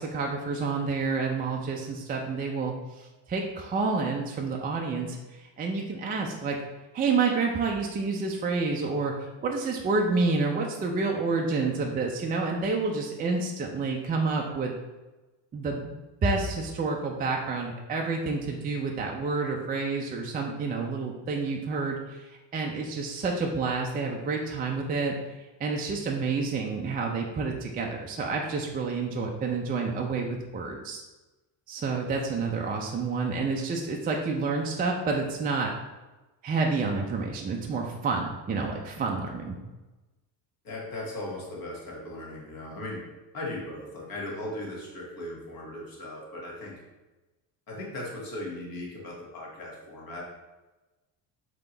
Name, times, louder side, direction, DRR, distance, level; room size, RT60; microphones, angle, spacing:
voice 1, 0.0-6.6 6.9-14.7 15.5-16.0 16.2-25.1 25.6-31.0 31.7-35.7 36.4-39.6, right 4 dB, 20° right, 0 dB, 0.4 m, -29 dB
voice 2, 40.6-43.0 43.3-46.8 47.7-50.2, left 1 dB, 45° left, -3 dB, 1.5 m, -38 dB
3.6 x 2.9 x 3.8 m, 1.1 s
supercardioid pair, 90°, 49 cm